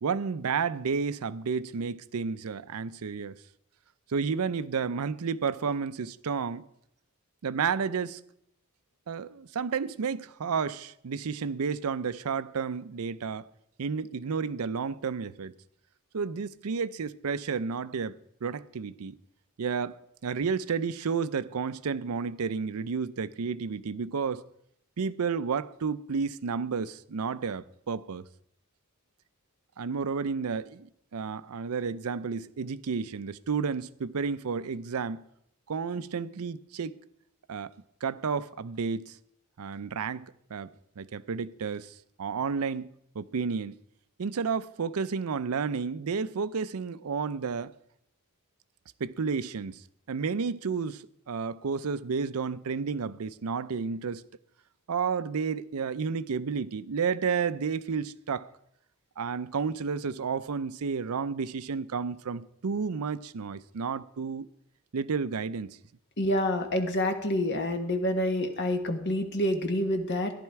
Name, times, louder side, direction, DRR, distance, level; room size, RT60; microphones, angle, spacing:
voice 1, 0.0-3.3 4.1-6.6 7.4-8.2 9.1-13.5 13.8-15.5 16.1-19.2 19.6-24.4 25.0-28.2 29.8-35.2 35.7-37.0 37.5-37.7 38.0-39.2 39.6-43.8 44.2-47.7 49.0-54.2 54.9-58.5 59.2-64.5 64.9-65.8, right 5 dB, 80° right, 0.5 m, -31 dB
voice 2, 66.2-70.3, left 1 dB, 50° left, 1.4 m, -27 dB
14.0 x 11.5 x 4.7 m
head